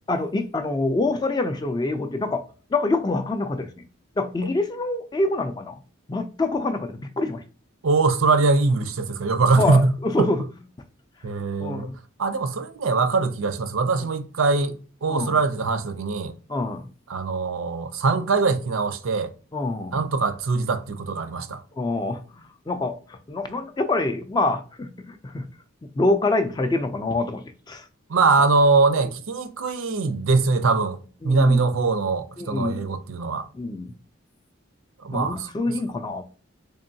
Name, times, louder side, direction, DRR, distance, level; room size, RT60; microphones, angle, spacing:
voice 1, 0.1-2.4 2.7-3.7 4.2-5.8 6.1-7.4 9.6-10.4 11.6-11.9 15.1-15.4 16.5-16.9 19.5-19.9 21.8-25.5 25.8-27.9 31.2-31.6 32.4-32.8 33.5-33.9 35.1-36.2, left 2 dB, 20° left, 0.3 m, -26 dB
voice 2, 7.8-9.9 10.2-10.3 11.2-11.9 12.2-14.8 15.0-16.3 17.1-19.3 19.9-21.6 28.1-31.0 31.2-33.5 35.0-35.7, right 3 dB, 75° right, 0.5 m, -22 dB
3.6 x 3.5 x 2.7 m
head